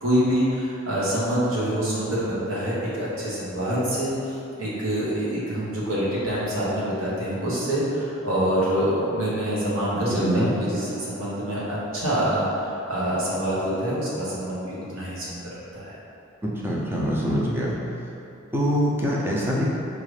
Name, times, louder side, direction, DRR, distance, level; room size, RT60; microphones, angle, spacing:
voice 1, 0.0-16.0, equal, 75° right, -8 dB, 1.1 m, -26 dB
voice 2, 9.9-10.5 16.5-17.8 18.5-19.6, equal, 10° right, -5 dB, 0.5 m, -24 dB
4.7 x 2.5 x 3.2 m, 2.8 s
head